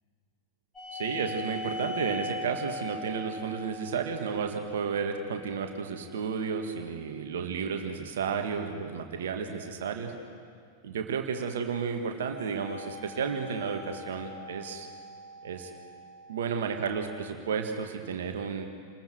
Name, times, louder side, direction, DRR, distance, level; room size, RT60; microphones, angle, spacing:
sound 1, 0.7-5.7 12.1-16.7, left 3 dB, 15° left, 6.6 m, -41 dB
voice 1, 0.9-10.1 10.8-14.9 15.4-15.7 16.3-18.6, right 6 dB, 60° right, 4 dB, 1.9 m, -32 dB
29.5 x 21.0 x 4.7 m, 2.1 s
figure-of-eight pair, 90°, 0 cm